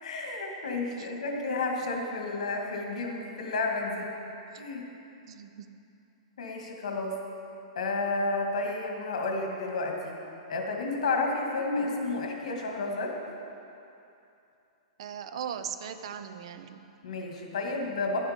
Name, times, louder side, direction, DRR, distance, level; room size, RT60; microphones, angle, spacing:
voice 1, 0.0-4.1 4.6-4.9 6.4-7.1 7.8-10.2 10.5-13.1 17.0-18.2, left 3 dB, 75° left, 1 dB, 1.9 m, -31 dB
voice 2, 5.3-5.7 15.0-16.9, right 8 dB, 50° right, 10 dB, 0.6 m, -39 dB
11.5 x 9.5 x 5.1 m, 2.8 s
supercardioid pair, 180°, 4 cm